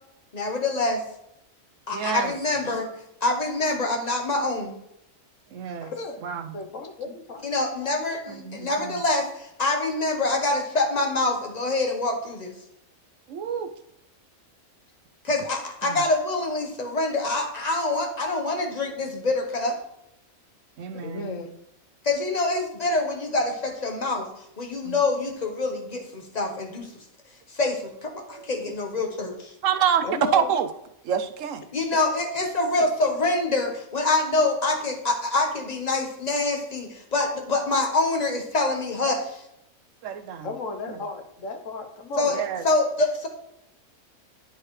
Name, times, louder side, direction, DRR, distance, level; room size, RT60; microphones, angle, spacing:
voice 1, 0.3-1.0 1.9-2.9 3.2-4.7 7.4-12.5 15.2-19.8 22.0-24.3 24.6-26.9 27.5-29.5 31.7-39.4 42.2-43.3, left 2 dB, 30° left, 3 dB, 1.1 m, -25 dB
voice 2, 1.9-2.3 5.5-5.9 6.2-6.5 8.3-9.0 13.3-13.7 15.8-16.0 20.8-21.4 24.8-25.0 28.2-28.5 29.6-30.1 30.3-30.7 31.0-31.7 40.0-40.5 40.9-41.0 42.3-42.6, right 8 dB, 70° right, 8 dB, 0.9 m, -28 dB
voice 3, 5.8-6.2 6.5-7.5 7.8-7.9 20.9-21.5 30.0-30.5 40.4-42.3, left 3 dB, 65° left, 5 dB, 1.3 m, -34 dB
10.5 x 4.7 x 3.2 m, 0.80 s
omnidirectional pair, 1.5 m